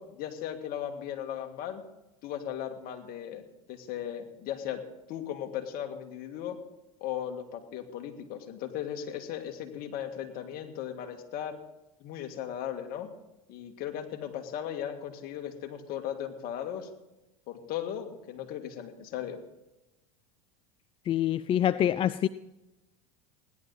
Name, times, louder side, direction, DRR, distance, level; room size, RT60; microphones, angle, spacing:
voice 1, 0.0-1.8 2.2-3.4 3.7-6.6 7.0-11.6 12.0-13.1 13.5-16.9 17.5-19.4, left 10 dB, 50° left, 1.9 m, -37 dB
voice 2, 21.1-22.3, left 11 dB, 30° left, 0.4 m, -25 dB
17.0 x 11.0 x 4.1 m
hypercardioid pair, 95°, 19 cm